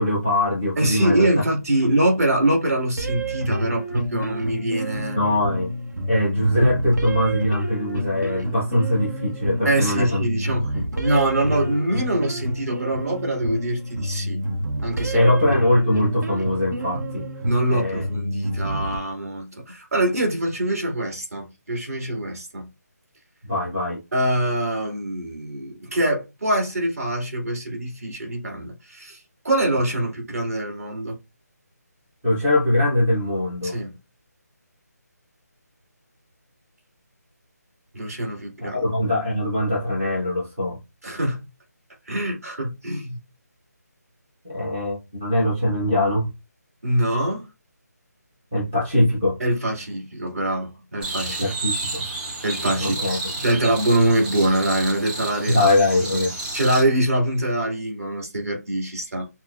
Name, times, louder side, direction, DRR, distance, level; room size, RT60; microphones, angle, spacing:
voice 1, 0.0-1.3 5.1-5.7 6.1-10.2 10.7-10.8 15.1-17.2 17.7-18.0 23.4-24.0 32.2-33.8 38.6-40.8 44.4-46.3 48.5-49.4 51.3-52.0 52.8-53.2 55.5-56.4, left 1 dB, 5° right, 0.3 m, -22 dB
voice 2, 0.8-5.2 9.6-14.4 14.8-15.3 17.4-22.7 24.1-31.2 33.6-33.9 37.9-38.8 41.0-41.4 42.1-43.2 46.8-47.5 49.4-51.5 52.4-53.0 53.4-55.7 56.0-56.2 56.5-59.3, right 1 dB, 55° right, 2.0 m, -24 dB
sound 1, 3.0-19.0, right 1 dB, 85° right, 0.8 m, -29 dB
sound 2, 51.0-56.8, right 2 dB, 35° right, 2.1 m, -31 dB
6.0 x 2.0 x 2.3 m
figure-of-eight pair, 175°, 9 cm